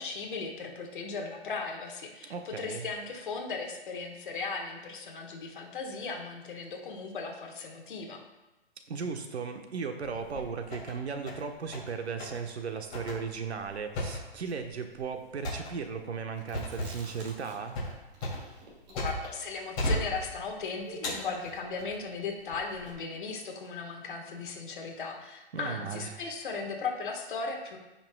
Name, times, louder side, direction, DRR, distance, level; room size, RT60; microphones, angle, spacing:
voice 1, 0.0-8.2 18.9-27.8, left 4 dB, 50° left, 2 dB, 1.5 m, -37 dB
voice 2, 2.3-2.9 8.9-17.8 25.5-26.2, right 5 dB, 85° right, 5 dB, 1.2 m, -36 dB
sound 1, 10.0-10.9 11.3-11.9 12.2-12.4 12.9-19.4 19.8-20.6 21.0-22.0 22.5-22.9, left 1 dB, 20° left, 2.6 m, -36 dB
Chewing mastication, 16.4-17.8 18.1-21.5, right 1 dB, 40° right, 2.1 m, -49 dB
15.0 x 5.9 x 2.3 m, 1.0 s
hypercardioid pair, 170°, 32 cm